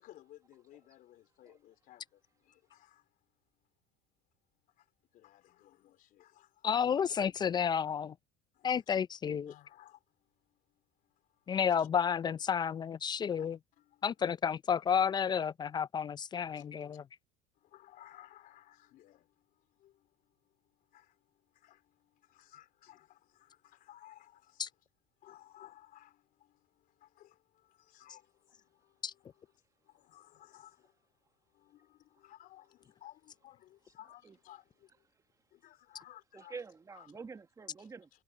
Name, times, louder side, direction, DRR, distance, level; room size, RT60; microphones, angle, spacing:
voice 1, 0.0-3.2 4.8-4.9 5.1-6.7 8.5-8.8 9.5-11.9 13.4-13.5 13.8-14.0 16.5-17.0 17.6-24.7 25.2-29.5 29.8-31.0 31.5-35.1 35.5-36.6 36.9-37.1 37.8-37.9, left 13 dB, 50° left, 3.6 m, -59 dB
voice 2, 6.6-8.1 8.6-9.5 11.5-13.6 14.0-17.0 24.6-24.7 29.0-29.1, left 7 dB, 25° left, 0.4 m, -31 dB
voice 3, 36.3-38.1, right 4 dB, 20° right, 1.5 m, -47 dB
supercardioid pair, 115°, 18 cm